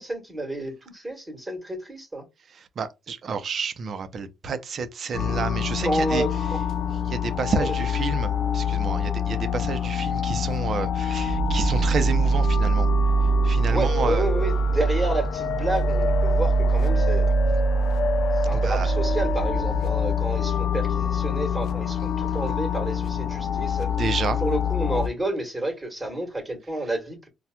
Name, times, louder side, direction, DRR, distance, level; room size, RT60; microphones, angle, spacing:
voice 1, 0.0-2.2 5.8-6.6 7.6-7.8 13.7-17.3 18.4-23.9 24.4-27.3, right 1 dB, 15° right, 1.3 m, -30 dB
voice 2, 2.5-6.2 7.1-12.9 13.4-14.2 18.5-18.9 24.0-24.4, right 5 dB, 55° right, 0.6 m, -30 dB
sound 1, 5.1-25.1, left 1 dB, 70° left, 0.4 m, -24 dB
4.2 x 2.3 x 2.2 m
cardioid pair, 90°, 0 cm